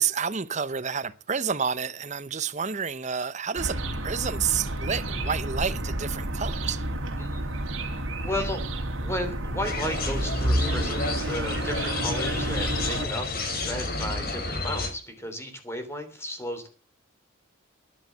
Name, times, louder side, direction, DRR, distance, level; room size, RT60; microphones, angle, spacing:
voice 1, 0.0-6.8, right 6 dB, 35° right, 0.8 m, -29 dB
sound 1, 3.6-13.1, right 1 dB, 75° right, 2.3 m, -30 dB
voice 2, 8.2-8.7 9.0-13.3 13.7-16.7, left 1 dB, 15° left, 3.1 m, -34 dB
sound 2, 9.6-14.9, left 3 dB, 50° left, 2.8 m, -31 dB
12.5 x 11.0 x 7.6 m
head